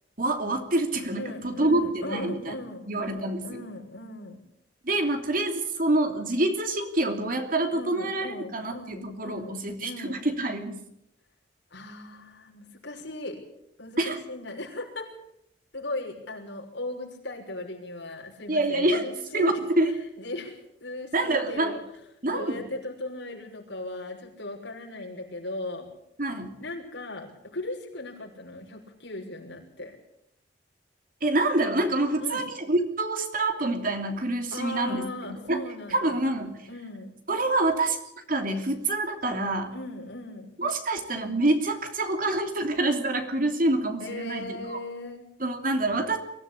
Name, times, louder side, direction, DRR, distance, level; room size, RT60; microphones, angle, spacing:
voice 1, 0.2-2.5 2.9-3.5 4.8-10.8 14.0-14.2 18.5-19.0 19.3-19.9 21.1-21.8 22.2-22.6 26.2-26.5 31.2-35.1 35.5-35.6 35.9-36.7 37.3-38.0 38.3-39.7 40.6-44.8 45.4-46.2, right 2 dB, 50° right, 5 dB, 2.9 m, -26 dB
voice 2, 1.1-4.4 7.7-10.2 11.7-13.4 13.8-15.1 15.7-21.8 22.3-25.9 26.6-30.0 32.2-32.4 34.5-36.3 36.7-37.1 39.7-40.6 44.0-45.3, left 2 dB, 75° left, 0 dB, 6.0 m, -38 dB
23.5 x 15.0 x 8.5 m, 0.81 s
head